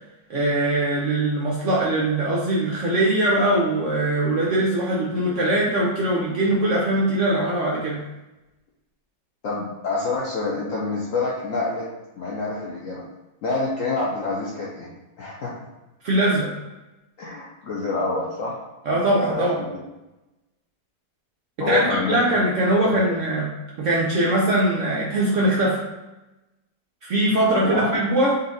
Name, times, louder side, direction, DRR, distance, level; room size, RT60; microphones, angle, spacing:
voice 1, 0.3-8.0 16.0-16.5 18.9-19.6 21.7-23.5 23.8-25.8 27.0-28.4, right 1 dB, 80° right, -4 dB, 0.6 m, -21 dB
voice 2, 9.4-11.9 12.2-13.0 13.4-14.9 15.2-15.5 17.2-18.6 19.3-19.8 21.6-22.3 22.8-22.9 27.5-28.0, left 3 dB, 70° left, -4 dB, 0.7 m, -27 dB
4.1 x 2.5 x 3.8 m, 1.0 s
omnidirectional pair, 2.0 m